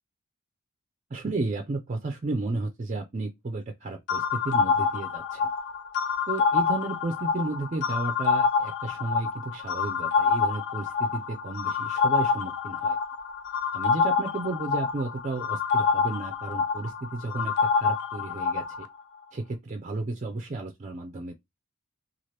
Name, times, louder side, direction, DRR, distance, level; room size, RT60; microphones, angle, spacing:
voice 1, 1.1-5.5 6.3-13.0 13.7-18.9 19.3-21.5, right 2 dB, 30° right, 0.4 m, -33 dB
sound 1, 4.1-18.9, left 5 dB, 50° left, 0.3 m, -27 dB
2.9 x 2.3 x 3.2 m
head